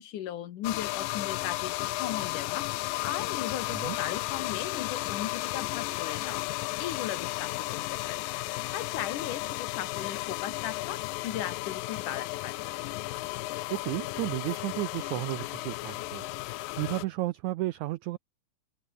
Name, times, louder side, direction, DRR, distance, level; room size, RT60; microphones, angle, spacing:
voice 1, 0.0-2.7 3.0-6.4 6.8-8.3 8.6-12.7, left 11 dB, 65° left, 2.8 m, -37 dB
sound 1, 0.6-17.0, left 20 dB, 85° left, 2.3 m, -34 dB
voice 2, 13.7-18.2, right 18 dB, 85° right, 1.6 m, -33 dB
open air
omnidirectional pair, 4.1 m